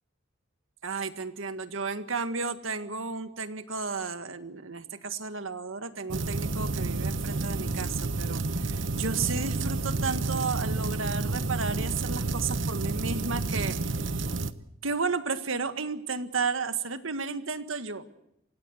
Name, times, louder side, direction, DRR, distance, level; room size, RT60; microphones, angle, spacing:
voice 1, 0.8-14.3 14.8-18.2, right 4 dB, 90° right, 10 dB, 1.8 m, -33 dB
sound 1, 6.1-14.5, right 3 dB, 70° right, 1.1 m, -30 dB
28.0 x 16.5 x 8.0 m, 0.82 s
head